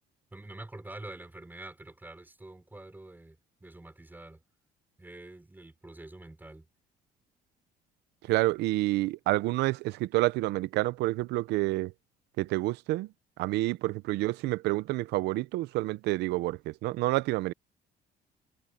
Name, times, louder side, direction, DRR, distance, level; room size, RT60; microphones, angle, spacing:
voice 1, 0.3-4.4 5.0-6.7, right 2 dB, 10° right, 5.6 m, -46 dB
voice 2, 8.3-11.9 12.4-13.1 13.4-17.5, right 18 dB, 85° right, 0.7 m, -28 dB
cardioid pair, 110°, 17 cm